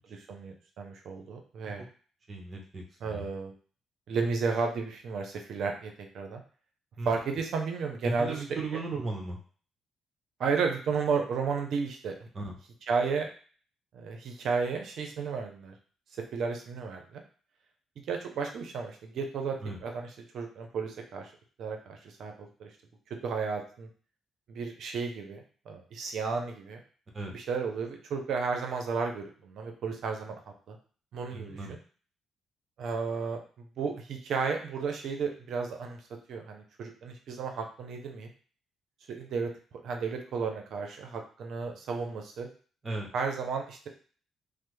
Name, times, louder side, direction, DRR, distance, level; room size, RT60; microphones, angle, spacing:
voice 1, 0.1-1.8 3.0-3.5 4.1-6.4 7.0-8.4 10.4-12.3 12.9-13.3 13.9-15.7 16.3-17.2 18.1-21.3 21.6-22.7 23.2-23.9 24.5-26.8 27.3-30.3 30.7-30.8 31.1-31.8 32.8-36.0 36.3-38.3 39.1-39.5 39.8-42.5 43.1-43.9, right 5 dB, 70° right, 3 dB, 0.6 m, -33 dB
voice 2, 2.3-3.3 7.0-7.1 8.2-9.4 12.3-12.5 19.6-19.8 27.1-27.3 31.3-31.7 42.8-43.1, right 3 dB, 35° right, 0 dB, 1.0 m, -36 dB
3.2 x 2.0 x 3.1 m, 0.42 s
cardioid pair, 90°, 0 cm